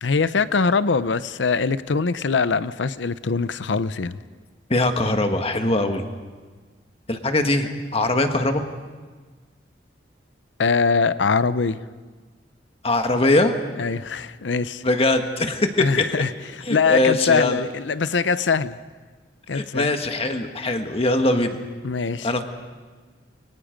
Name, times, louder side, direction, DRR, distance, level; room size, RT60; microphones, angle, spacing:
voice 1, 0.0-4.2 10.6-11.8 13.8-14.8 15.8-16.3 16.7-18.8 19.5-19.9 21.8-22.3, left 5 dB, 80° left, 15 dB, 0.7 m, -22 dB
voice 2, 4.7-6.0 7.1-8.6 12.8-13.5 14.8-16.0 16.6-17.6 19.5-21.6 22.2-22.4, left 2 dB, 35° left, 6 dB, 1.6 m, -21 dB
29.5 x 23.5 x 5.2 m, 1.4 s
head